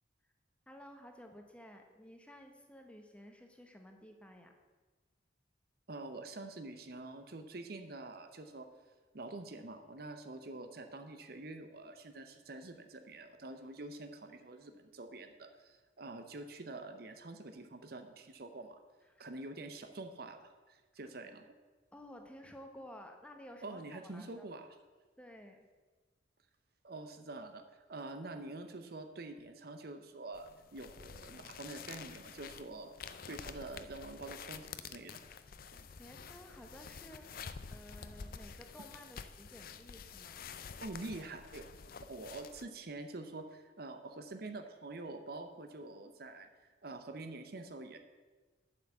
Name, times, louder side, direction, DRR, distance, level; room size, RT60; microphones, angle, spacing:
voice 1, 0.7-4.5 19.1-19.3 21.9-24.5 25.2-25.7 35.7-40.5, equal, 5° left, 4 dB, 0.9 m, -54 dB
voice 2, 5.9-8.7 9.1-18.8 19.2-21.4 23.6-24.7 26.8-35.2 35.7-35.9 40.8-41.7 42.1-48.0, right 2 dB, 55° right, 7 dB, 0.7 m, -46 dB
sound 1, 30.3-42.6, left 6 dB, 50° left, 0.5 m, -49 dB
7.9 x 5.8 x 7.9 m, 1.3 s
head